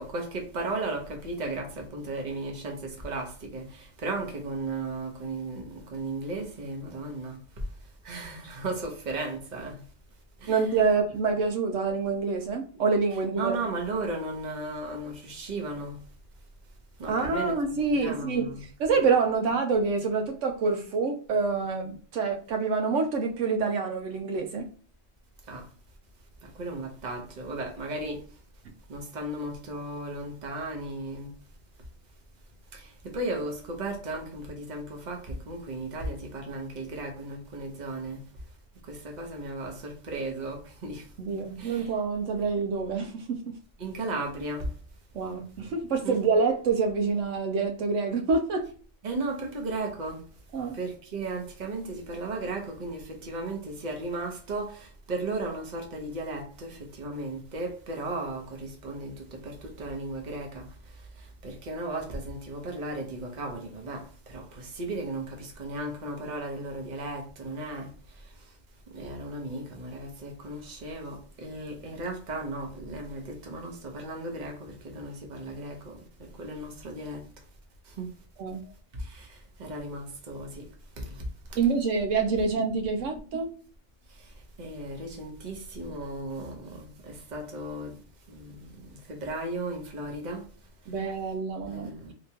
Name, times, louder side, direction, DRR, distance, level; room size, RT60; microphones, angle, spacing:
voice 1, 0.0-7.4 8.0-9.8 10.4-10.6 13.4-16.0 17.0-17.5 17.9-18.6 18.9-19.1 25.5-25.7 26.6-28.2 28.9-31.3 32.7-38.2 38.9-41.0 41.6-41.9 43.8-44.7 46.0-46.2 49.0-50.2 50.7-60.7 61.4-67.9 68.9-76.0 76.4-77.2 78.0-78.1 79.1-79.3 79.6-80.6 81.0-81.2 84.6-87.9 88.3-90.4 91.6-92.1, right 2 dB, 40° right, 0.9 m, -35 dB
voice 2, 10.5-13.6 17.1-18.5 18.8-24.7 41.2-43.6 45.1-48.7 50.5-50.8 78.4-78.6 81.6-83.5 90.9-91.9, right 4 dB, 85° right, 1.0 m, -27 dB
3.3 x 2.9 x 2.8 m
omnidirectional pair, 1.3 m